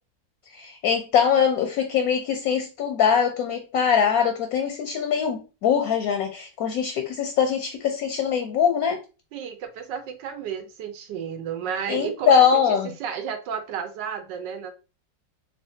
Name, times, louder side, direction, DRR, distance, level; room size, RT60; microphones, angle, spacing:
voice 1, 0.5-9.0 11.9-12.9, left 7 dB, 70° left, 0.9 m, -22 dB
voice 2, 9.3-14.7, right 7 dB, 80° right, 1.3 m, -32 dB
3.4 x 3.3 x 2.7 m
omnidirectional pair, 1.9 m